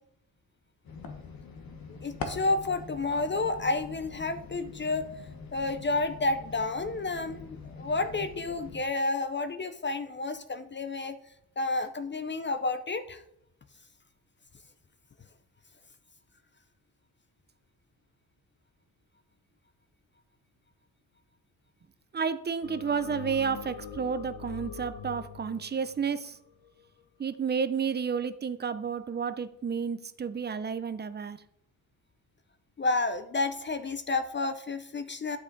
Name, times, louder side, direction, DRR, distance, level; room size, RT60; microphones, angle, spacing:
sound 1, 0.8-8.8, left 4 dB, 60° left, 1.3 m, -43 dB
voice 1, 1.9-5.1 5.5-11.2 11.6-13.2 32.8-35.4, left 3 dB, 30° left, 11 dB, 0.5 m, -30 dB
voice 2, 22.1-26.4 27.2-31.4, right 6 dB, 25° right, 12 dB, 0.5 m, -31 dB
sound 2, 22.6-27.0, left 6 dB, 90° left, 0.9 m, -43 dB
10.5 x 5.9 x 3.9 m, 0.78 s
wide cardioid pair, 150°, 39 cm